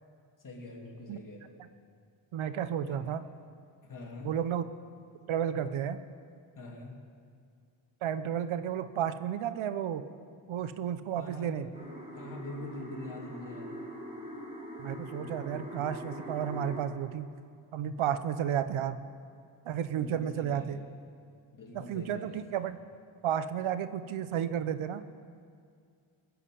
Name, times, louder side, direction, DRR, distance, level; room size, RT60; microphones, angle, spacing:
voice 1, 0.4-1.6 2.9-3.0 3.8-4.3 6.6-7.0 11.2-11.6 12.1-13.8 20.0-20.9 21.5-22.4, left 2 dB, 40° left, -1 dB, 3.0 m, -44 dB
voice 2, 2.3-3.2 4.2-4.6 5.3-6.0 8.0-10.0 10.5-11.7 14.8-17.3 17.7-19.0 19.6-20.8 21.7-22.8 23.2-25.0, right 9 dB, 80° right, 12 dB, 0.8 m, -32 dB
sound 1, 11.7-16.8, equal, 15° right, 3.2 m, -43 dB
21.0 x 7.3 x 8.5 m, 2.3 s
cardioid pair, 105°, 48 cm